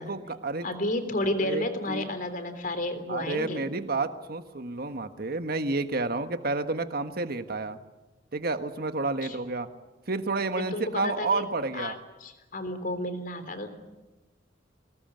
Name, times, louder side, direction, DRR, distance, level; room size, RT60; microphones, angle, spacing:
voice 1, 0.0-0.7 1.4-2.1 3.1-7.8 8.3-9.7 10.1-12.0, right 3 dB, 55° right, 9 dB, 1.5 m, -30 dB
voice 2, 0.6-3.7 9.2-9.4 10.6-11.4 11.7-13.7, left 1 dB, 50° left, 9 dB, 3.4 m, -32 dB
24.5 x 19.5 x 9.3 m, 1.1 s
head